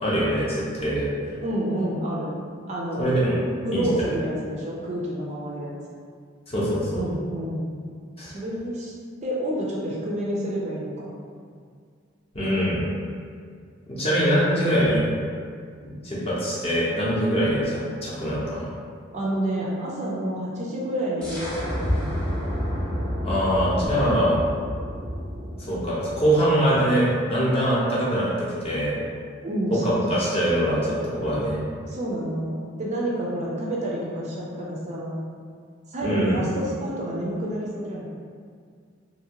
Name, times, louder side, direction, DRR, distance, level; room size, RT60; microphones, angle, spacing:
voice 1, 0.0-1.1 3.0-3.4 3.7-4.1 6.5-7.0 8.2-8.4 12.3-12.8 13.9-15.0 15.8-18.7 23.2-24.4 25.6-28.9 29.8-31.6 36.0-36.4, equal, 30° left, -7 dB, 0.6 m, -23 dB
voice 2, 1.4-2.3 2.7-3.0 3.6-5.7 6.9-7.7 8.2-8.9 9.2-11.1 19.1-22.6 29.4-30.5 31.9-35.2 35.9-38.1, right 1 dB, 35° right, -5 dB, 0.4 m, -29 dB
sound 1, 21.2-26.7, equal, 5° left, 0.8 m, -30 dB
2.7 x 2.5 x 2.8 m, 2.1 s
head